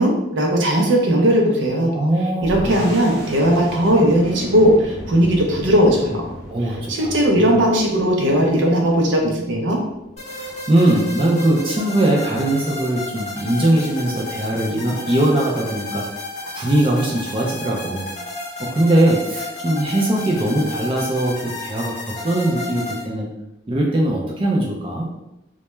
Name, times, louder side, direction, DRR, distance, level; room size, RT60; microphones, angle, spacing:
voice 1, 0.0-1.9 2.4-6.2 6.6-9.8, equal, 90° right, 0 dB, 0.5 m, -17 dB
voice 2, 1.9-2.9 6.5-7.5 10.3-16.0 16.5-18.1 18.6-23.3 23.7-25.1, right 1 dB, 30° right, -2 dB, 0.4 m, -20 dB
sound 1, 2.4-11.6, equal, 50° right, 0.8 m, -36 dB
sound 2, 10.2-23.0, left 2 dB, 35° left, 0.6 m, -32 dB
2.2 x 2.1 x 2.9 m, 0.90 s
head